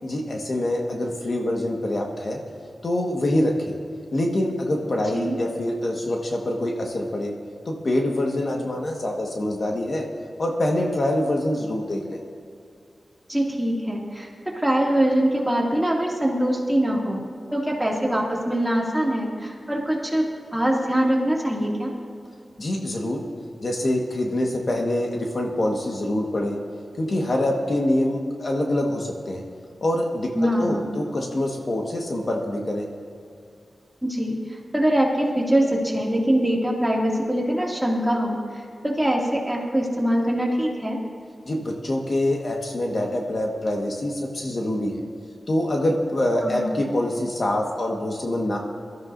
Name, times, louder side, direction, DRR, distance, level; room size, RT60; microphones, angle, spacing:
voice 1, 0.0-2.4 2.8-3.7 4.1-7.3 7.6-10.0 10.4-12.2 22.6-23.2 23.6-26.6 27.0-29.4 29.8-32.9 41.5-44.9 45.5-48.6, left 1 dB, 50° left, 0 dB, 1.6 m, -25 dB
voice 2, 13.3-17.2 17.5-20.3 20.5-21.9 30.3-30.9 34.0-41.0 46.4-46.8, right 1 dB, 10° right, -3 dB, 2.5 m, -23 dB
21.5 x 13.5 x 2.7 m, 2.3 s
wide cardioid pair, 105°, 0 cm